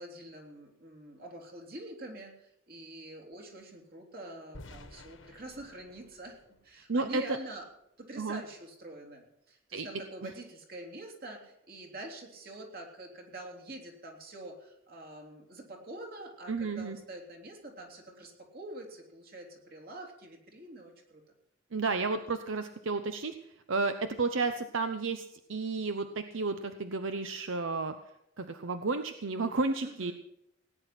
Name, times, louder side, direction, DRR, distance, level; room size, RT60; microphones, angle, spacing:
voice 1, 0.0-7.6 8.0-21.2 29.8-30.1, right 1 dB, 50° right, 2 dB, 3.3 m, -46 dB
sound 1, 4.5-7.5, left 2 dB, 80° left, 1.6 m, -53 dB
voice 2, 6.9-7.4 8.2-8.4 9.7-9.9 16.5-17.0 21.7-23.3 23.7-27.9 28.4-30.1, right 3 dB, 80° right, 8 dB, 0.8 m, -32 dB
17.5 x 10.0 x 6.0 m, 0.81 s
head